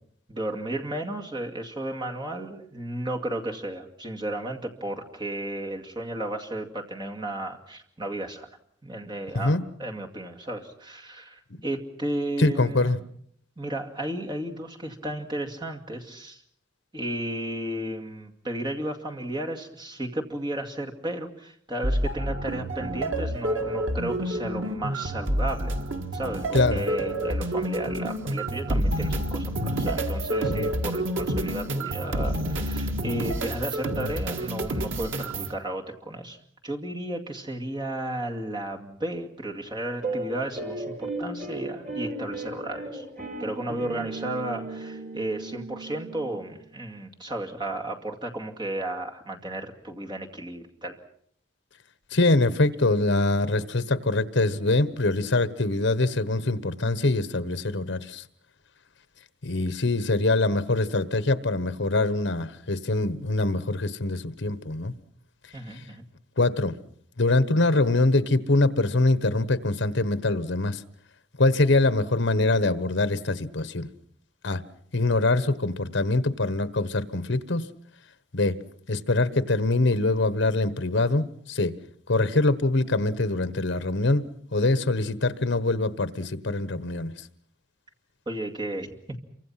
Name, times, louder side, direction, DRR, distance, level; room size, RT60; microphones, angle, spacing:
voice 1, 0.3-8.5 8.8-13.0 13.6-16.4 16.9-25.8 26.1-36.4 36.6-43.0 43.4-51.0 65.5-66.0 88.3-89.2, right 1 dB, 25° right, 2.3 m, -33 dB
voice 2, 12.4-13.0 26.5-26.9 52.1-58.2 59.4-64.9 66.4-66.8 67.2-70.8 71.4-73.9 74.4-74.6 74.9-77.7 78.3-78.5 78.9-81.7 82.1-84.2 84.5-87.1, left 2 dB, 65° left, 1.2 m, -24 dB
sound 1, 21.8-35.5, right 1 dB, 85° right, 1.8 m, -28 dB
sound 2, 40.0-46.5, right 2 dB, 40° right, 6.3 m, -35 dB
27.5 x 24.5 x 5.8 m
head